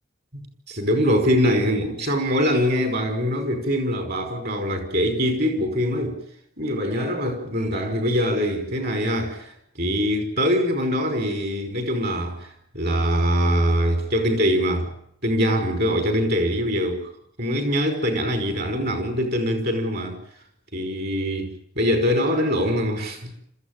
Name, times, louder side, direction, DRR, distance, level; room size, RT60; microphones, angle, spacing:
voice 1, 0.3-6.2 6.6-14.9 15.2-17.1 17.4-20.2 20.7-23.3, equal, 55° right, 5.3 m, -23 dB
27.0 x 14.5 x 9.1 m
head